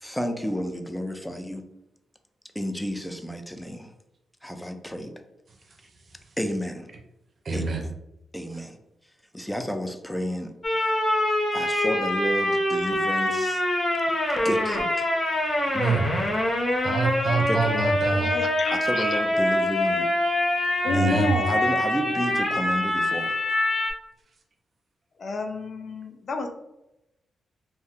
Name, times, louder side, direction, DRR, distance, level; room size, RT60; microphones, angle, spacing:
voice 1, 0.0-1.6 2.6-3.9 4.4-5.1 6.4-6.9 7.5-8.0 8.3-8.8 9.3-10.5 11.5-13.6 14.4-15.1 17.5-17.6 18.7-20.1 20.9-23.4, equal, 5° left, 6 dB, 0.5 m, -31 dB
voice 2, 7.4-7.9 10.7-10.8 15.7-16.0 16.8-18.3 20.8-21.3, right 4 dB, 55° right, 3 dB, 0.6 m, -26 dB
sound 1, 10.6-23.9, left 1 dB, 40° left, 0.8 m, -25 dB
voice 3, 18.1-19.2 20.8-21.6 25.2-26.5, left 3 dB, 60° left, 5 dB, 0.5 m, -30 dB
2.6 x 2.3 x 3.5 m, 0.89 s
supercardioid pair, 55°, 0 cm